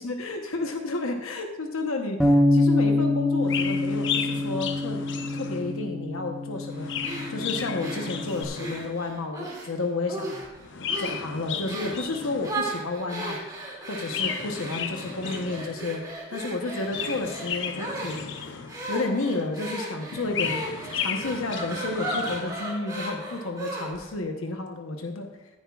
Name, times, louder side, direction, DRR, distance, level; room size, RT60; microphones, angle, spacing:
voice 1, 0.0-5.0 5.3-6.9 7.3-10.4 11.0-13.5 13.9-16.0 16.3-18.6 18.9-20.6 20.9-25.3, left 2 dB, 85° left, 4 dB, 1.0 m, -31 dB
Bass guitar, 2.2-8.4, left 1 dB, ahead, 1.0 m, -25 dB
Chirp tweet, 3.4-5.9 6.6-9.0 10.6-12.8 14.0-15.9 16.7-19.0 20.0-22.6, left 7 dB, 60° left, 0.7 m, -34 dB
sound 1, 7.0-9.7 10.1-10.6 10.9-11.2 11.7-12.0 12.4-24.1, right 1 dB, 20° right, 2.4 m, -35 dB
15.0 x 9.9 x 2.4 m, 1.1 s
head